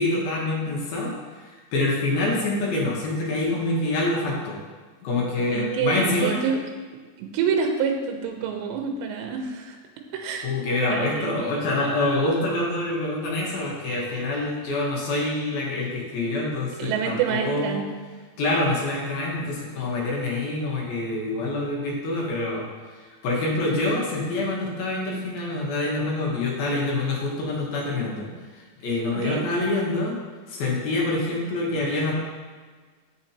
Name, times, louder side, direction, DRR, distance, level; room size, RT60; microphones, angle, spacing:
voice 1, 0.0-4.6 5.0-6.4 10.4-17.8 18.4-22.6 23.2-30.2 30.5-32.1, left 2 dB, 65° left, -4 dB, 2.7 m, -26 dB
voice 2, 5.5-6.6 7.2-9.8 10.1-10.5 10.9-11.5 16.8-17.9 29.1-29.4, right 6 dB, 80° right, 3 dB, 2.8 m, -27 dB
8.8 x 6.7 x 2.9 m, 1.4 s
omnidirectional pair, 5.3 m